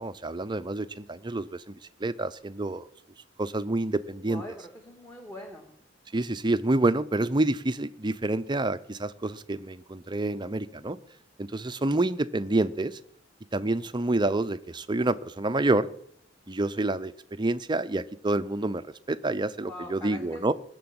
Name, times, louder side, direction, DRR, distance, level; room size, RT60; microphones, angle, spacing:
voice 1, 0.0-1.7 2.0-2.9 3.4-4.4 6.1-11.0 11.4-13.0 13.5-15.9 16.5-17.1 17.4-20.5, right 2 dB, 25° right, 12 dB, 0.6 m, -28 dB
voice 2, 4.3-5.7 19.6-20.5, left 1 dB, 15° left, 2 dB, 2.1 m, -43 dB
20.0 x 6.9 x 8.8 m, 0.68 s
head